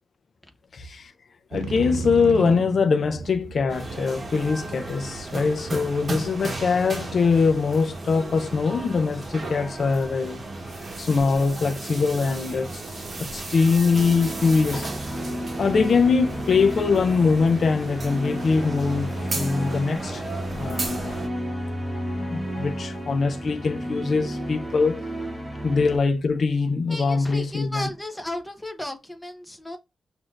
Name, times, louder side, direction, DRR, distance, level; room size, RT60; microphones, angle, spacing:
voice 1, 0.7-1.1 1.5-10.4 11.0-14.9 15.6-20.2 20.5-21.2 22.2-25.0 25.6-27.9, left 4 dB, 50° left, 0.6 m, -23 dB
Motorcycle, 1.5-7.6, right 6 dB, 80° right, 0.4 m, -37 dB
sound 1, 3.7-21.3, right 2 dB, 35° right, 1.2 m, -35 dB
sound 2, 13.9-26.0, equal, 10° right, 2.2 m, -32 dB
voice 2, 26.9-29.8, left 1 dB, 10° left, 0.9 m, -34 dB
6.1 x 2.7 x 2.5 m
wide cardioid pair, 130°, 0 cm